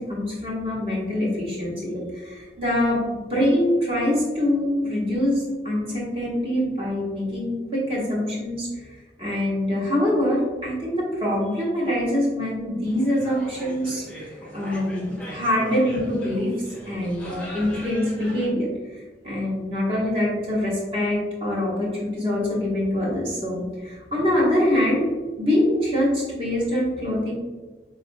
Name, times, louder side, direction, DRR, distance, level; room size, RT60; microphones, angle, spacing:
voice 1, 0.0-8.7 9.2-16.5 16.8-18.7 19.2-25.1 25.4-27.3, left 1 dB, 30° right, -6 dB, 1.1 m, -24 dB
sound 1, 12.8-18.5, equal, 5° left, 0.8 m, -38 dB
4.1 x 2.6 x 2.6 m, 1.3 s
head